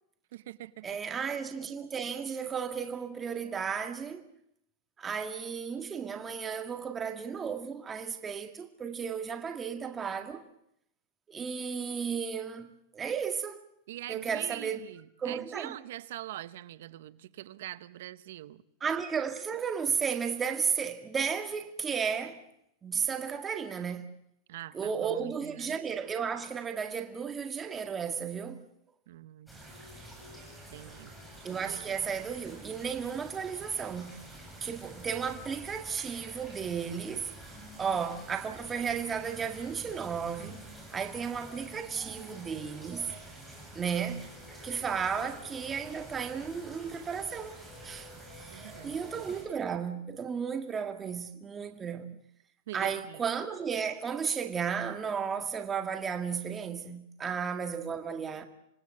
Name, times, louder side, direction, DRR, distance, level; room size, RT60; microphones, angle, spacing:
voice 1, 0.3-1.0 13.9-18.6 24.5-25.8 29.1-29.5 30.7-31.1 31.7-31.8 48.5-49.0 52.7-53.2, right 14 dB, 70° right, 0.8 m, -44 dB
voice 2, 0.8-4.3 5.0-10.5 11.3-13.6 14.1-14.8 15.2-15.8 18.8-22.4 22.8-24.1 24.7-28.6 31.4-34.2 34.6-37.3 37.8-40.6 40.9-43.1 43.7-44.3 44.6-52.2 52.7-58.5, right 6 dB, 20° right, 1.8 m, -34 dB
sound 1, 29.5-49.4, right 1 dB, ahead, 7.9 m, -48 dB
26.5 x 18.0 x 7.6 m
supercardioid pair, 145°, 0 cm